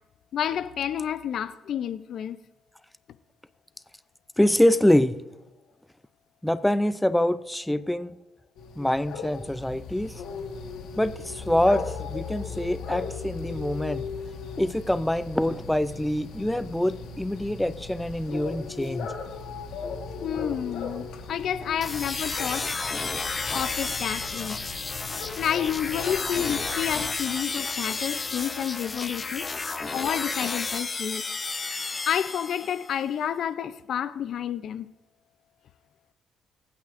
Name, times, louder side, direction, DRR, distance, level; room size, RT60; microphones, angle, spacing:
voice 1, 0.3-2.4 20.2-22.7 23.5-24.6 25.4-29.5 29.9-31.3 32.1-34.9, left 9 dB, 65° left, 0.5 m, -30 dB
voice 2, 4.4-5.2 6.4-8.2 8.8-10.1 11.0-14.1 14.6-19.1 26.9-27.0, left 1 dB, 5° left, 0.5 m, -25 dB
sound 1, 8.6-27.1, left 5 dB, 85° left, 1.4 m, -37 dB
sound 2, 21.8-33.0, left 4 dB, 30° left, 0.8 m, -32 dB
23.5 x 9.3 x 2.6 m
cardioid pair, 90°, 0 cm